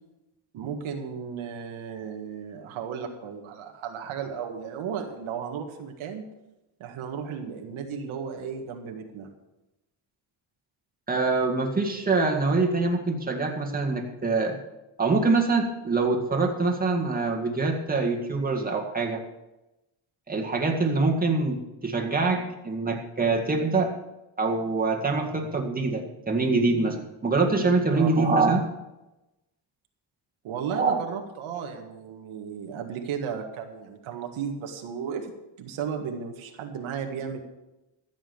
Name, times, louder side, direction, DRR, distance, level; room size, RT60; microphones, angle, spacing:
voice 1, 0.5-6.2 6.8-9.3 28.0-28.2 30.4-35.3 35.6-37.4, right 7 dB, 90° right, 3 dB, 1.9 m, -34 dB
voice 2, 11.1-14.6 15.0-19.2 20.3-23.9 24.4-28.7 30.7-30.9, right 3 dB, 20° right, 2 dB, 2.1 m, -24 dB
14.0 x 7.6 x 7.1 m, 0.97 s
cardioid pair, 115°, 47 cm